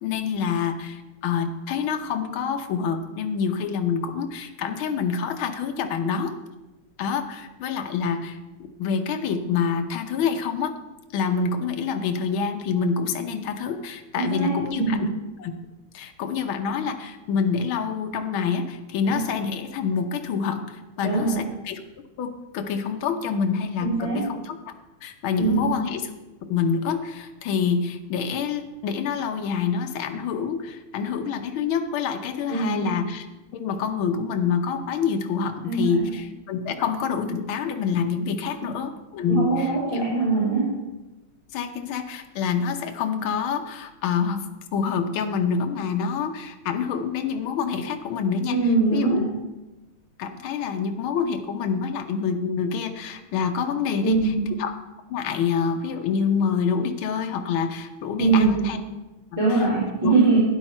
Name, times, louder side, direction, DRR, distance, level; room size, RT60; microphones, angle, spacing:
voice 1, 0.0-6.3 7.0-10.7 11.1-15.1 15.4-15.5 15.9-21.8 22.2-24.6 25.0-26.1 26.5-33.3 33.5-39.7 39.9-40.0 41.5-44.4 44.7-48.6 48.9-49.3 50.2-54.7 55.1-58.8 59.3-59.6 60.0-60.1, left 6 dB, 75° left, 6 dB, 1.7 m, -27 dB
voice 2, 14.1-15.1 19.0-19.2 21.0-21.4 23.8-24.3 25.4-25.7 32.5-32.9 35.6-36.0 38.6-38.7 39.3-40.6 48.5-49.2 54.0-54.5 58.2-58.7 59.4-60.4, right 3 dB, 15° right, -8 dB, 2.9 m, -22 dB
12.0 x 10.0 x 4.3 m, 1.1 s
omnidirectional pair, 2.4 m